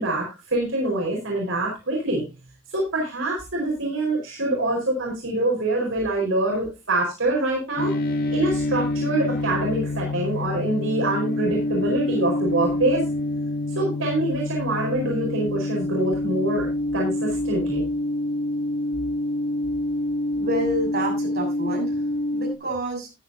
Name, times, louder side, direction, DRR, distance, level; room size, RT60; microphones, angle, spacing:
voice 1, 0.0-2.2 2.7-7.9 8.3-13.0 13.7-17.8, right 2 dB, 70° right, -2 dB, 4.9 m, -25 dB
sound 1, 7.8-22.5, left 1 dB, 45° left, 1.7 m, -26 dB
voice 2, 20.4-23.1, right 1 dB, 50° right, -1 dB, 6.5 m, -29 dB
14.5 x 10.5 x 2.8 m, 0.26 s
head